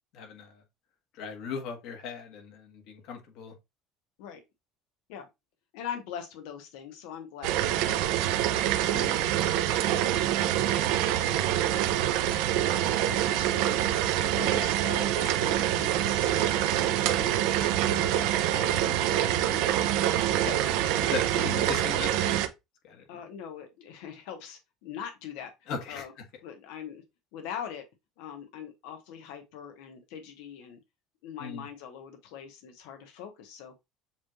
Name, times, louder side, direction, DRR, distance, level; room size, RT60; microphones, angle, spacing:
voice 1, 0.1-0.6 1.1-3.5 8.9-9.2 14.4-14.6 17.9-18.0 20.4-20.6 21.0-22.3 22.8-23.2 25.7-26.0 31.4-31.6, left 5 dB, 55° left, 1.3 m, -38 dB
voice 2, 5.7-8.6 8.9-9.3 9.9-11.5 12.2-17.4 18.0-19.6 20.3-20.8 21.3-21.5 23.1-26.1 26.4-27.0 27.3-27.9 28.2-30.8 31.2-33.7, left 8 dB, 80° left, 1.0 m, -43 dB
sound 1, 7.4-22.5, right 12 dB, 75° right, 0.6 m, -26 dB
7.1 x 3.1 x 2.3 m
cardioid pair, 170°, 0 cm